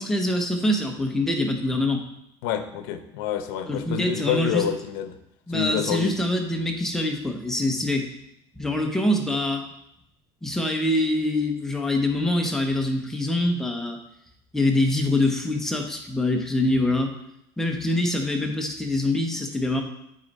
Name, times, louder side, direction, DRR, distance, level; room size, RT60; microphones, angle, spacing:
voice 1, 0.0-2.0 3.7-4.6 5.5-8.1 8.6-9.6 10.4-14.0 14.5-17.1 17.6-19.8, left 1 dB, 5° left, 2 dB, 0.8 m, -24 dB
voice 2, 2.4-5.2 5.5-6.2, left 9 dB, 80° left, 9 dB, 0.8 m, -27 dB
8.7 x 4.1 x 4.1 m, 0.79 s
cardioid pair, 155°, 12 cm